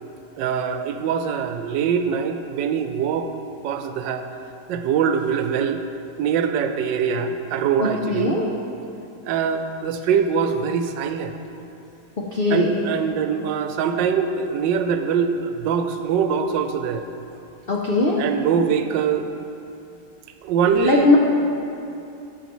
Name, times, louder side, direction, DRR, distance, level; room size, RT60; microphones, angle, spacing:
voice 1, 0.4-3.3 3.6-4.2 4.7-5.8 6.2-8.4 9.3-11.4 12.5-17.0 18.2-19.3 20.4-21.2, right 7 dB, 85° right, 8 dB, 1.3 m, -23 dB
voice 2, 7.8-8.5 12.2-12.7 17.7-18.2 20.7-21.2, left 3 dB, 70° left, -2 dB, 0.5 m, -20 dB
12.0 x 7.5 x 3.1 m, 2.7 s
omnidirectional pair, 1.9 m